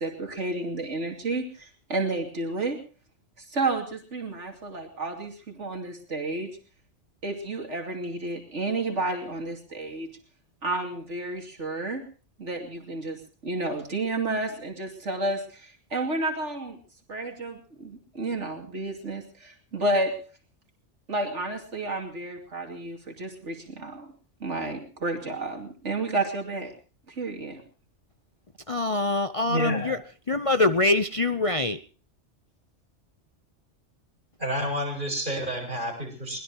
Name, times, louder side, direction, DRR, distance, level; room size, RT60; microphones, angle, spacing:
voice 1, 0.0-2.8 3.5-6.5 7.2-10.1 10.6-12.0 12.4-16.8 17.1-20.2 21.1-24.1 24.4-26.7 27.2-27.6, right 2 dB, 75° right, 3 dB, 2.9 m, -31 dB
voice 2, 28.7-30.0 30.3-31.7, left 2 dB, 30° left, 10 dB, 0.8 m, -24 dB
voice 3, 29.4-29.9 34.4-36.4, equal, 45° right, 1 dB, 7.5 m, -30 dB
23.5 x 20.0 x 3.0 m, 0.39 s
omnidirectional pair, 1.2 m